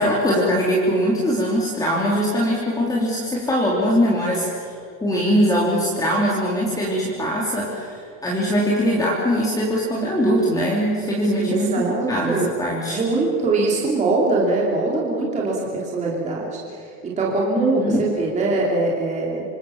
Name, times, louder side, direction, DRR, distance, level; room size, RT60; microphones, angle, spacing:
voice 1, 0.0-4.8 5.0-11.7 12.1-13.0 17.8-18.0, equal, 10° left, -4 dB, 3.0 m, -21 dB
voice 2, 11.4-12.5 12.8-19.4, right 3 dB, 15° right, -4 dB, 3.2 m, -22 dB
26.5 x 26.5 x 7.2 m, 2.3 s
cardioid pair, 180°, 42 cm